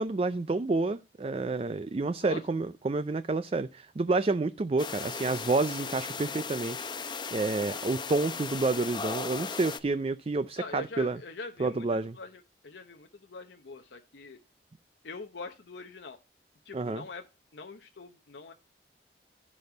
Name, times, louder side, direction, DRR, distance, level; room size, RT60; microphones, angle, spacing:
voice 1, 0.0-11.2 11.6-12.2 16.7-17.0, right 3 dB, 35° right, 0.4 m, -29 dB
sound 1, 4.8-9.8, left 5 dB, 25° left, 0.7 m, -37 dB
voice 2, 10.6-14.4 15.0-16.2 16.6-17.3 17.5-18.5, left 3 dB, 85° left, 0.9 m, -43 dB
15.0 x 5.3 x 3.9 m
head